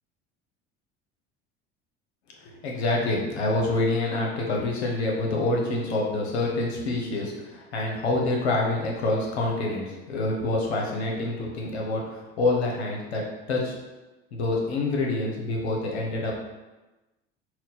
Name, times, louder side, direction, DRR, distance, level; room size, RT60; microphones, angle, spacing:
voice 1, 2.4-13.7 14.3-16.4, left 2 dB, 90° left, -1 dB, 0.9 m, -27 dB
4.2 x 2.2 x 4.1 m, 1.1 s
hypercardioid pair, 75°, 32 cm